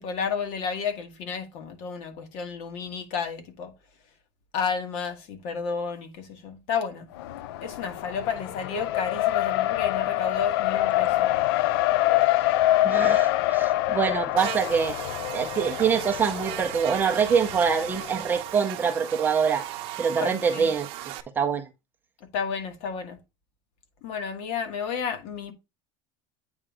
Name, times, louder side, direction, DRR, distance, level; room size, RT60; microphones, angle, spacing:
voice 1, 0.0-3.7 4.5-7.1 7.6-11.3 20.2-20.7 22.3-23.2 24.0-25.5, left 6 dB, 50° left, 1.5 m, -31 dB
Race car auto racing, 7.2-18.2, left 15 dB, 75° left, 0.5 m, -26 dB
voice 2, 12.8-14.9 15.3-19.6 20.0-20.9 21.4-21.7, right 6 dB, 15° right, 0.6 m, -24 dB
Buzz, 14.4-21.2, right 14 dB, 45° right, 0.8 m, -36 dB
8.7 x 3.1 x 4.9 m
cardioid pair, 175°, 13 cm